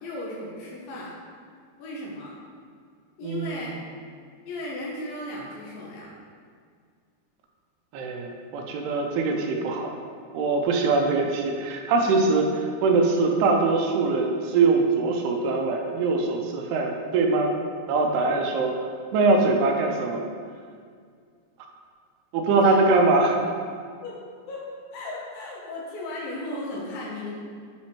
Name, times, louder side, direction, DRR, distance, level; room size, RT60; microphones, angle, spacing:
voice 1, 0.0-1.1 1.8-2.4 3.2-3.8 4.5-6.1 22.6-22.8 24.0-24.1 24.5-24.7 24.9-27.3, left 1 dB, 75° left, -4 dB, 2.3 m, -35 dB
voice 2, 3.2-3.6 7.9-9.9 10.3-17.5 17.9-18.9 19.1-20.2 22.3-23.4, right 3 dB, 80° right, 2 dB, 2.6 m, -22 dB
8.2 x 3.0 x 4.3 m, 2.1 s
omnidirectional pair, 4.7 m